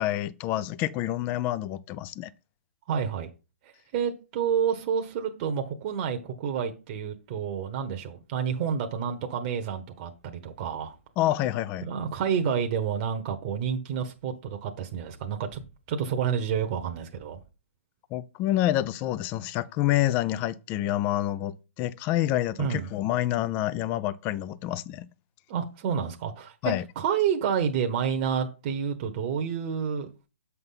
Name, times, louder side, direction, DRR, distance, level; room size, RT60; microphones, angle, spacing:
voice 1, 0.0-2.3 11.2-11.9 18.1-25.1 26.6-26.8, left 14 dB, 25° left, 0.4 m, -27 dB
voice 2, 2.9-3.3 3.6-10.9 11.8-15.6 15.9-17.4 22.6-22.9 25.5-30.1, right 7 dB, 35° right, 1.0 m, -29 dB
7.7 x 5.7 x 3.8 m
hypercardioid pair, 140°, 7 cm